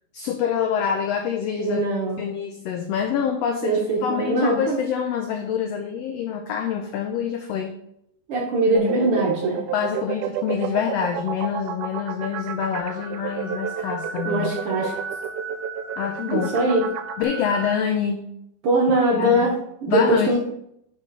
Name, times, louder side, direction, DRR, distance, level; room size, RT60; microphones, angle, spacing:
voice 1, 0.1-1.8 2.2-7.7 9.7-14.5 16.0-16.5 17.2-18.3 19.1-19.5 19.9-20.4, left 8 dB, 85° left, 4 dB, 1.4 m, -26 dB
voice 2, 1.6-2.2 3.6-4.8 8.3-9.6 14.2-14.9 16.3-16.9 18.6-19.6 19.8-20.4, right 1 dB, 65° right, -1 dB, 1.4 m, -21 dB
sound 1, 8.8-17.2, right 10 dB, 80° right, 1.9 m, -31 dB
sound 2, 12.8-17.8, right 4 dB, 5° left, 2.0 m, -36 dB
5.3 x 5.2 x 5.2 m, 0.76 s
omnidirectional pair, 3.5 m